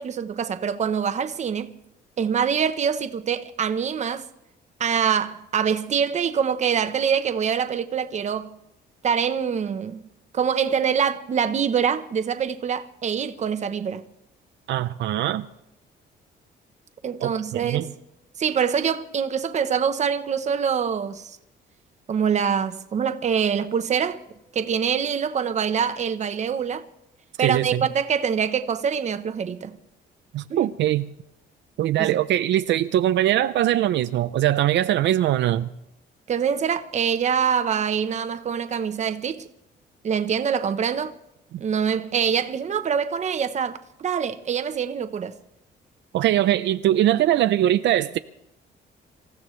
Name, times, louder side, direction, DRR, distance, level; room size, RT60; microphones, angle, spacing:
voice 1, 0.0-1.7 2.2-4.2 4.8-8.5 9.0-10.0 10.3-14.0 17.0-17.9 18.4-21.4 22.1-24.2 24.5-26.9 27.4-29.8 30.5-30.7 32.0-32.1 36.3-39.5 40.0-41.1 41.6-45.4, right 7 dB, 40° right, 0.9 m, -24 dB
voice 2, 14.7-15.5 17.2-17.9 27.4-27.8 30.3-31.1 31.8-35.7 41.5-41.6 46.1-48.2, right 12 dB, 75° right, 0.6 m, -22 dB
26.5 x 15.5 x 3.2 m
cardioid pair, 155°, 19 cm